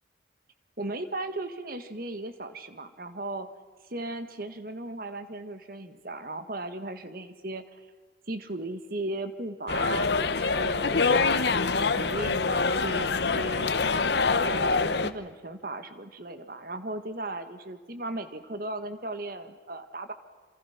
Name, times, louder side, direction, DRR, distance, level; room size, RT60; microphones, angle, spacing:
voice 1, 0.8-3.5 3.9-7.6 8.3-13.8 14.4-20.1, right 2 dB, 50° right, 9 dB, 1.7 m, -36 dB
sound 1, 9.7-15.1, left 4 dB, 65° left, 0.9 m, -25 dB
27.5 x 27.0 x 6.0 m, 1.4 s
head